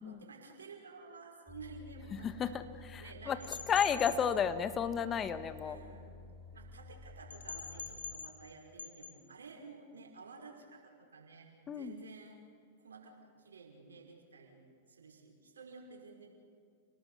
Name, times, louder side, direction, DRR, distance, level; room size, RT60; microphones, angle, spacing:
voice 1, 0.0-2.5 3.0-4.2 5.6-6.1 6.5-11.5 11.7-12.4 12.8-16.3, right 4 dB, 85° right, 0 dB, 5.4 m, -53 dB
sound 1, 1.5-8.2, left 3 dB, 10° left, 2.4 m, -52 dB
voice 2, 2.1-5.8 11.7-11.9, left 7 dB, 25° left, 11 dB, 1.5 m, -33 dB
sound 2, 3.4-4.2 7.3-8.5 8.8-9.1, left 6 dB, 85° left, 2.0 m, -44 dB
29.5 x 19.0 x 7.0 m, 2.3 s
hypercardioid pair, 105°, 0 cm